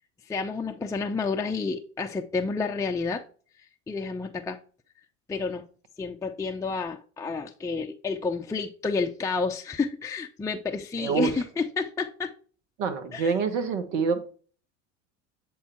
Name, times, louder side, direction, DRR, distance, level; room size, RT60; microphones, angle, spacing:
voice 1, 0.2-3.2 3.6-4.6 5.3-5.7 6.0-12.3 13.1-13.3, left 4 dB, 10° left, 0.5 m, -30 dB
voice 2, 11.0-11.3 12.8-14.2, right 5 dB, 70° right, 1.4 m, -26 dB
8.3 x 3.8 x 4.5 m
hypercardioid pair, 80°, 38 cm